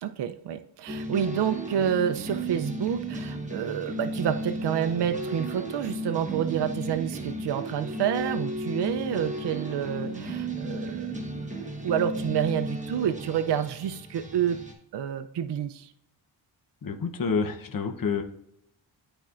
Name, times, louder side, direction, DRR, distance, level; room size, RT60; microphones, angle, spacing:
voice 1, 0.0-11.2 11.8-14.6 14.9-15.9, right 9 dB, 60° right, 8 dB, 0.5 m, -28 dB
sound 1, 0.9-14.7, right 1 dB, 15° right, 1.2 m, -34 dB
voice 2, 16.8-18.2, left 5 dB, 45° left, 5 dB, 0.9 m, -28 dB
11.5 x 4.3 x 2.5 m, 0.77 s
cardioid pair, 80°, 47 cm